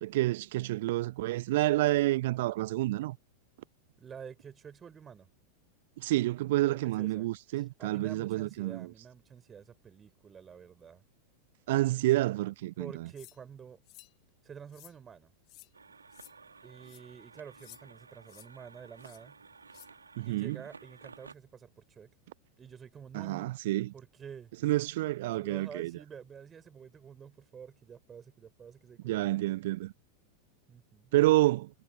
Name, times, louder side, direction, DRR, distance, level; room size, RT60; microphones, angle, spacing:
voice 1, 0.0-3.2 6.0-8.9 11.7-13.1 20.2-20.6 23.1-23.9 24.6-25.9 29.0-29.9 31.1-31.7, right 17 dB, 55° right, 0.3 m, -29 dB
voice 2, 4.0-5.3 6.6-7.3 7.6-11.0 12.8-13.8 14.4-15.3 16.6-19.4 20.2-22.1 22.6-23.5 23.9-24.5 25.3-29.4 30.7-31.1, right 7 dB, 20° right, 4.7 m, -49 dB
sound 1, 13.2-13.4 13.9-14.1 14.7-15.0 15.5-15.7 16.1-16.3 16.8-17.0 17.6-17.8 18.3-18.5 19.0-19.2 19.7-19.9, left 21 dB, 40° left, 1.6 m, -54 dB
sound 2, 15.7-21.3, right 4 dB, 75° right, 2.9 m, -54 dB
figure-of-eight pair, 90°, 0 cm